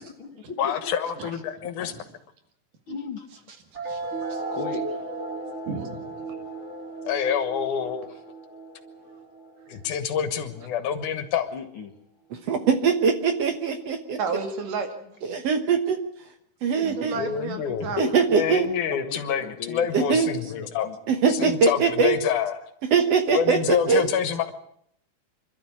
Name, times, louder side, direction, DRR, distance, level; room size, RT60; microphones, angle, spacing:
voice 1, 0.0-0.9 1.8-1.9 2.9-3.3 4.5-4.8 11.5-11.9 16.8-17.2 17.9-18.1 18.9-21.0, left 5 dB, 45° left, 3 dB, 1.9 m, -36 dB
voice 2, 0.6-1.9 7.0-8.2 9.7-11.5 17.2-17.9 18.3-20.9 21.3-22.6 23.3-24.5, left 8 dB, 70° left, 11 dB, 2.8 m, -27 dB
sound 1, 3.7-10.7, right 3 dB, 20° right, 3.6 m, -35 dB
voice 3, 5.7-6.3 14.2-14.9 15.2-15.3 16.8-18.0, right 5 dB, 80° right, 6 dB, 3.7 m, -32 dB
voice 4, 12.3-14.2 15.3-16.0 16.6-17.2 18.0-18.7 19.9-20.3 21.1-22.2 22.9-24.1, right 5 dB, 60° right, 8 dB, 2.0 m, -22 dB
26.0 x 12.5 x 8.6 m, 0.72 s
omnidirectional pair, 3.7 m